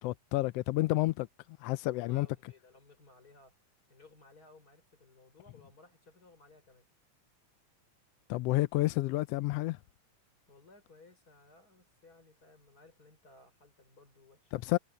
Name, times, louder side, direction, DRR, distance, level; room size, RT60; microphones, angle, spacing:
voice 1, 0.0-1.3 1.6-2.3 8.3-9.8 14.5-14.8, left 18 dB, 90° left, 1.4 m, -30 dB
voice 2, 1.9-3.6 3.9-6.9 10.5-14.6, left 3 dB, 30° left, 5.8 m, -59 dB
omnidirectional pair, 3.4 m